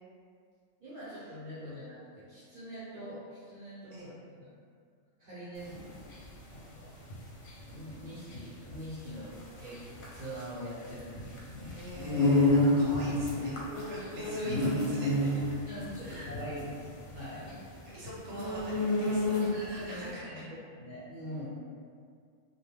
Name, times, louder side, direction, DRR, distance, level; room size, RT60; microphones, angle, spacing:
voice 1, 0.8-4.5 5.2-6.2 6.5-6.9 7.7-9.8 10.1-11.8 15.6-17.5 19.5-21.5, equal, 50° right, -11 dB, 0.9 m, -43 dB
sound 1, 5.6-19.8, left 2 dB, 65° left, 0.8 m, -30 dB
voice 2, 11.6-15.3 16.0-16.3 17.4-20.4, right 1 dB, 70° right, -7 dB, 1.1 m, -44 dB
2.3 x 2.1 x 3.2 m, 2.1 s
omnidirectional pair, 1.3 m